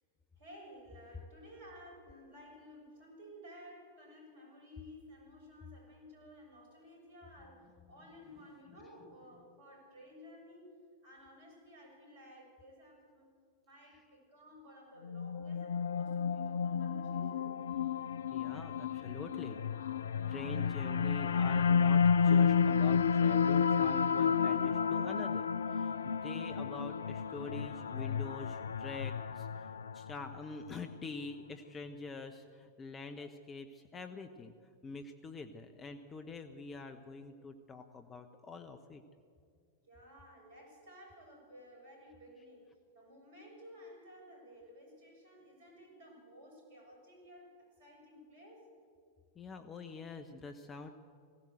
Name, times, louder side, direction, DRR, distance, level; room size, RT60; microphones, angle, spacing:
voice 1, 0.4-10.7 11.0-13.3 13.6-17.5 39.8-42.7 42.9-47.5 47.8-48.7, equal, 55° right, 1 dB, 6.8 m, -55 dB
sound 1, 15.0-30.4, left 6 dB, 65° left, 0.4 m, -31 dB
voice 2, 18.3-19.6 20.3-29.7 29.9-34.5 34.8-39.0 49.3-50.9, left 4 dB, 20° left, 6 dB, 1.0 m, -46 dB
20.0 x 16.5 x 8.0 m, 2.2 s
figure-of-eight pair, 90°, 0 cm